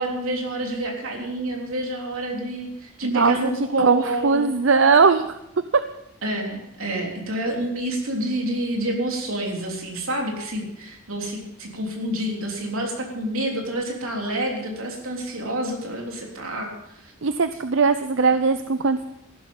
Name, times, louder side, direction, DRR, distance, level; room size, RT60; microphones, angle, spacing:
voice 1, 0.0-4.5 6.2-17.1, right 1 dB, 90° right, 1 dB, 3.4 m, -28 dB
voice 2, 3.0-3.4 3.8-5.4 5.7-5.8 17.2-19.1, right 5 dB, 70° right, 11 dB, 0.6 m, -19 dB
14.5 x 12.5 x 5.5 m, 0.81 s
head